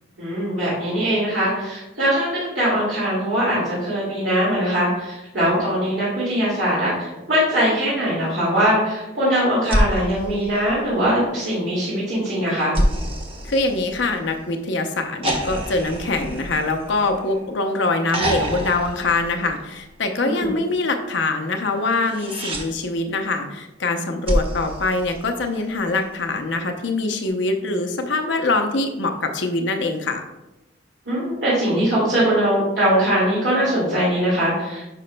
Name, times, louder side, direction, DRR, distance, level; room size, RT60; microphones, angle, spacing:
voice 1, 0.2-12.8 20.2-20.5 31.1-34.8, equal, 70° right, -8 dB, 2.2 m, -21 dB
sound 1, 9.6-11.2 12.7-14.4 15.2-17.5 18.1-19.9 21.9-22.7 24.3-25.7 27.3-27.4, equal, 30° right, 0.8 m, -27 dB
voice 2, 13.4-30.2, left 3 dB, 70° left, 5 dB, 0.7 m, -23 dB
8.9 x 5.4 x 2.2 m, 0.99 s
head